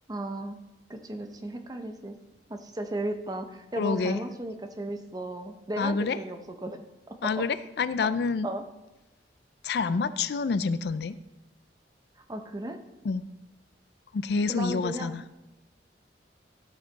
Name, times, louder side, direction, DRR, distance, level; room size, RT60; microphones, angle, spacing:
voice 1, 0.1-0.6 0.9-2.2 2.5-7.5 8.0-8.1 8.4-8.6 12.3-12.8 14.5-15.2, right 1 dB, 20° right, 6 dB, 0.7 m, -35 dB
voice 2, 3.8-4.2 5.8-6.2 7.2-8.5 9.6-11.2 13.0-13.2 14.1-15.2, left 4 dB, 65° left, 14 dB, 0.4 m, -28 dB
13.0 x 6.6 x 4.1 m, 0.99 s
head